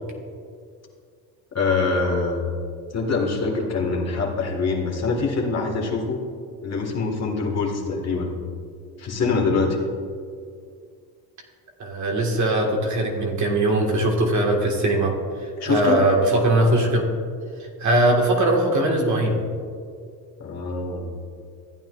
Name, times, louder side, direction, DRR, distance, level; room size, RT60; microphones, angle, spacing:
voice 1, 1.5-2.4 2.9-6.2 6.6-8.3 9.0-9.8 15.6-16.0 20.4-21.1, left 4 dB, 35° left, 0 dB, 1.9 m, -24 dB
voice 2, 11.8-15.2 15.6-17.1 17.8-19.4, right 1 dB, 40° right, 0 dB, 1.9 m, -20 dB
14.5 x 8.9 x 2.5 m, 2.2 s
supercardioid pair, 95°, 43 cm